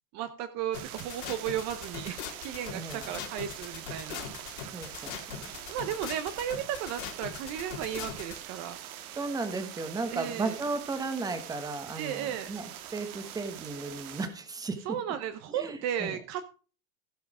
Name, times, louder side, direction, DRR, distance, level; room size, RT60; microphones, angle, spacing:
voice 1, 0.1-4.6 5.7-8.8 10.1-10.6 12.0-12.5 14.8-16.5, right 10 dB, 40° right, 11 dB, 0.8 m, -35 dB
sound 1, 0.7-8.4, left 10 dB, 65° left, 3.6 m, -40 dB
sound 2, 0.7-14.3, right 11 dB, 80° right, 1.7 m, -44 dB
voice 2, 2.7-3.1 4.7-5.4 9.2-14.8 15.5-16.2, right 3 dB, 10° right, 9 dB, 1.1 m, -35 dB
16.0 x 5.7 x 4.9 m, 0.38 s
supercardioid pair, 160°, 42 cm